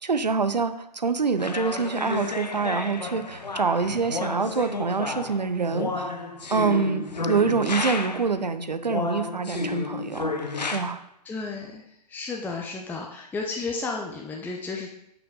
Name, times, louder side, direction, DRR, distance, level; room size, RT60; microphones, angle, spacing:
voice 1, 0.0-6.1 6.5-10.3 10.7-11.0, right 5 dB, 85° right, 11 dB, 0.7 m, -26 dB
sound 1, 1.4-8.4 8.9-10.8, left 3 dB, 85° left, 1.0 m, -31 dB
voice 2, 11.3-11.8 12.1-14.9, left 3 dB, 10° left, 0 dB, 0.7 m, -32 dB
9.3 x 5.9 x 3.8 m, 0.81 s
figure-of-eight pair, 110°, 21 cm